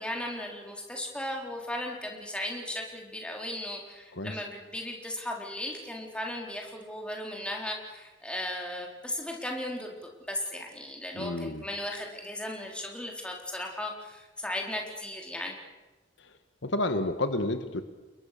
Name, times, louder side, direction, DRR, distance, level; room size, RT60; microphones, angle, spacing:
voice 1, 0.0-10.0 10.3-15.6, left 1 dB, 5° left, 0 dB, 4.0 m, -36 dB
voice 2, 11.2-11.7 16.6-17.8, left 2 dB, 65° left, 9 dB, 1.4 m, -30 dB
30.0 x 21.5 x 6.8 m, 1.1 s
head